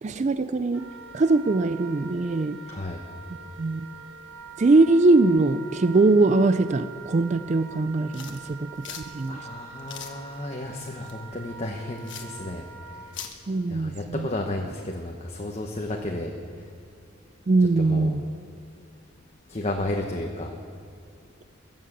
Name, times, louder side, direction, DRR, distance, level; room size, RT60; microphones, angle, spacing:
voice 1, 0.0-0.9 1.1-2.6 3.6-3.9 4.6-9.4 13.5-14.3 17.5-18.2, right 3 dB, 35° right, 12 dB, 0.4 m, -22 dB
Wind instrument woodwind instrument, 0.7-13.2, right 5 dB, 65° right, 1.4 m, -44 dB
voice 2, 2.7-3.0 9.3-12.6 12.9-13.1 13.7-16.3 17.8-18.1 19.5-20.5, left 1 dB, 30° left, 1 dB, 1.1 m, -32 dB
sound 1, 8.1-13.4, left 8 dB, 65° left, 1.3 m, -43 dB
22.0 x 7.5 x 7.3 m, 2.5 s
head